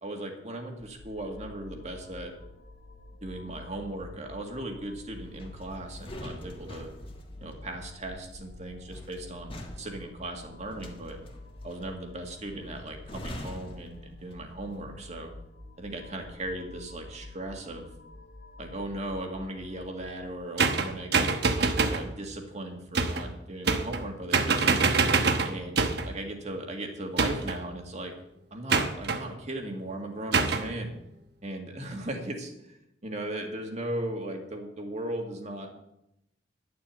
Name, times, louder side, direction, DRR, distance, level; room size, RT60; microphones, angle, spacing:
voice 1, 0.0-2.3 3.2-6.9 7.4-11.2 11.6-15.3 15.8-17.9 18.6-24.9 25.4-25.8 26.0-28.1 28.5-30.9 31.4-32.8 33.0-35.7, right 1 dB, 35° right, 3 dB, 1.9 m, -37 dB
sound 1, 0.8-20.3, left 1 dB, 55° left, 1.3 m, -48 dB
sound 2, 5.3-14.7 15.0-15.3, left 1 dB, 30° left, 1.6 m, -45 dB
sound 3, 20.6-22.1 22.9-23.3 23.7-24.1 24.3-26.1 27.2-27.6 28.7-29.2 30.3-30.7, right 4 dB, 60° right, 1.0 m, -25 dB
11.0 x 7.4 x 8.1 m, 0.85 s
head